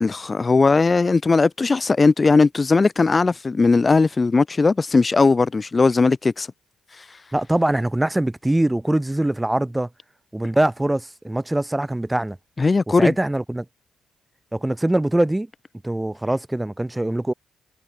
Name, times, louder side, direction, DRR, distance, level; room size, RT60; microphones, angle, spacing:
voice 1, 0.0-6.5 12.6-13.1, left 4 dB, 30° left, 0.4 m, -18 dB
voice 2, 7.3-9.9 10.3-12.4 13.0-13.6 14.5-15.5 15.8-17.3, right 1 dB, 10° right, 0.9 m, -22 dB
cardioid pair, 90°, 0 cm